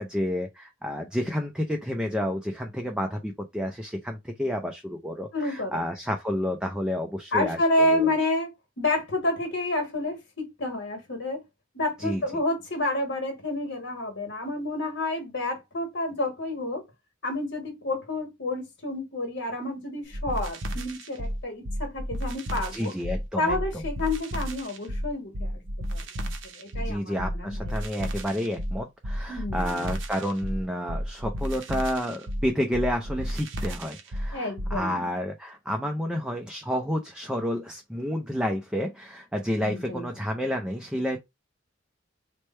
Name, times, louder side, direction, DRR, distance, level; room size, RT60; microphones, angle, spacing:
voice 1, 0.0-8.1 12.0-12.2 22.7-23.6 26.8-41.2, equal, 5° right, 0.4 m, -30 dB
voice 2, 5.3-5.8 7.3-8.5 8.8-11.4 11.7-16.8 17.2-22.9 23.4-25.6 25.9-26.0 26.5-27.7 29.3-29.9 34.3-35.1 39.6-40.0, left 1 dB, 65° left, 1.4 m, -29 dB
sound 1, 20.1-34.8, equal, 70° right, 0.8 m, -32 dB
3.2 x 2.2 x 4.2 m
head